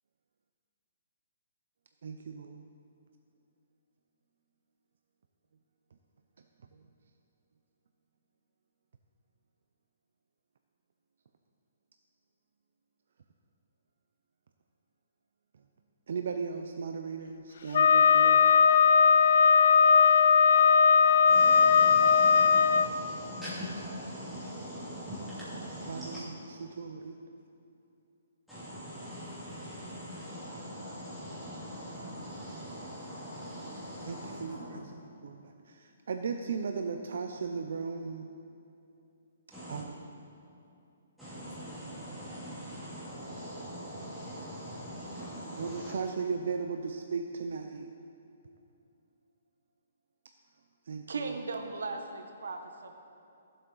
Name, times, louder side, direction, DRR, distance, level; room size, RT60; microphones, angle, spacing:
voice 1, 2.0-2.7 6.7-6.8 16.1-18.5 25.9-26.3 26.6-27.2 34.1-34.8 35.2-38.3 39.7-40.0 45.6-47.9 50.9-51.4, right 5 dB, 55° right, 5 dB, 0.5 m, -36 dB
Wind instrument woodwind instrument, 17.7-22.9, left 6 dB, 50° left, 0.3 m, -20 dB
voice 2, 21.3-26.2 28.5-34.8 39.5-39.8 41.2-46.1, equal, ahead, -14 dB, 2.7 m, -42 dB
voice 3, 51.1-52.9, right 3 dB, 85° right, 5 dB, 1.2 m, -37 dB
15.5 x 7.7 x 3.9 m, 2.6 s
hypercardioid pair, 175°, 0 cm